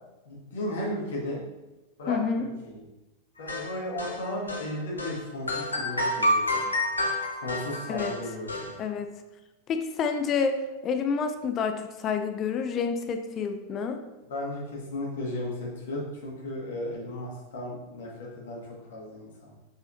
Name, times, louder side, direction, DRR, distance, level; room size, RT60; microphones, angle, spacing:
voice 1, 0.3-1.4 2.0-2.8 3.4-6.6 7.4-8.7 14.3-19.5, left 1 dB, 60° left, -3 dB, 1.9 m, -35 dB
voice 2, 2.1-2.5 7.9-8.1 8.8-9.1 9.7-10.6 10.8-14.0, left 6 dB, 30° left, 7 dB, 0.5 m, -28 dB
sound 1, 3.5-4.7 5.0-5.2 5.5-8.7, left 1 dB, 80° left, 1.0 m, -28 dB
6.9 x 5.5 x 2.7 m, 1.0 s
figure-of-eight pair, 90°, 0 cm